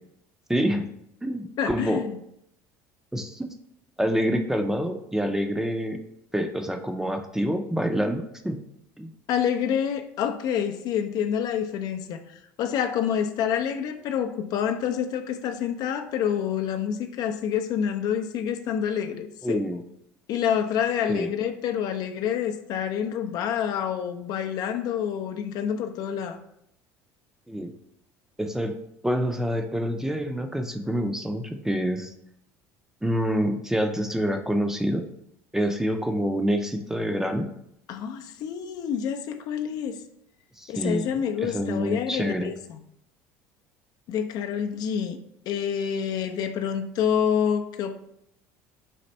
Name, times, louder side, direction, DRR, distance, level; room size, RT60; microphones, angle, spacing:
voice 1, 0.5-0.8 1.2-2.0 3.1-3.5 4.0-6.0 6.3-8.6 9.0-9.1 19.4-19.8 21.1-21.3 27.5-27.7 28.4-28.7 29.0-32.1 33.0-35.1 35.5-37.5 40.6-41.1 41.4-42.5, equal, 5° right, 6 dB, 0.5 m, -27 dB
voice 2, 1.6-2.2 9.3-19.6 20.3-26.4 37.9-40.0 40.7-42.8 44.1-45.2 45.5-47.9, left 8 dB, 60° left, 7 dB, 0.4 m, -27 dB
4.2 x 2.5 x 4.2 m, 0.75 s
supercardioid pair, 85°, 8 cm